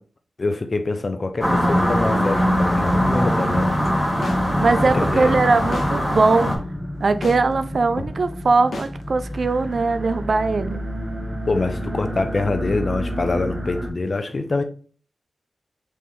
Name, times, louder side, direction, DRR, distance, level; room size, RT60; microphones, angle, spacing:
voice 1, 0.4-3.7 4.8-5.3 11.5-14.6, left 3 dB, 45° left, 0.7 m, -25 dB
sound 1, 1.4-6.6, equal, 5° left, 1.5 m, -23 dB
sound 2, 1.4-13.9, equal, 30° right, 1.3 m, -27 dB
sound 3, 3.5-3.6 4.2-4.4 5.0-5.1 5.7-5.9 6.5-6.6 7.2-7.4 8.0-8.1 8.7-8.9, left 3 dB, 75° left, 0.9 m, -30 dB
voice 2, 4.6-6.5 7.0-10.8, right 3 dB, 60° right, 0.4 m, -20 dB
4.2 x 3.2 x 3.6 m
cardioid pair, 65°, 0 cm